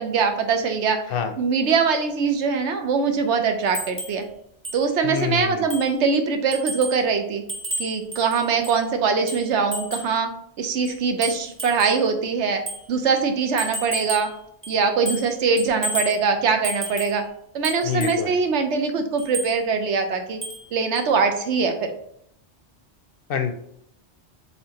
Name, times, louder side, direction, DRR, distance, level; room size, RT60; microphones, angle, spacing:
voice 1, 0.0-1.0 1.4-4.3 4.7-7.4 7.8-10.3 10.6-12.6 12.9-14.3 14.7-17.2 17.5-20.4 20.7-21.9, right 5 dB, 80° right, 6 dB, 1.0 m, -22 dB
sound 1, 3.7-4.2 4.6-4.8 5.2-5.3 5.7-6.0 6.5-7.0 7.5-8.8 9.3-10.1 10.8-12.0 12.7-12.8 13.6-14.3 14.6-15.3 15.6-16.2 16.6-17.2 17.6-18.2 19.2-19.5 20.4-20.7 20.9-21.1, right 1 dB, 15° right, 0.8 m, -32 dB
voice 2, 5.0-5.7 17.8-18.4 23.3-23.5, left 6 dB, 60° left, 7 dB, 0.7 m, -26 dB
4.3 x 3.6 x 2.9 m, 0.71 s
omnidirectional pair, 1.2 m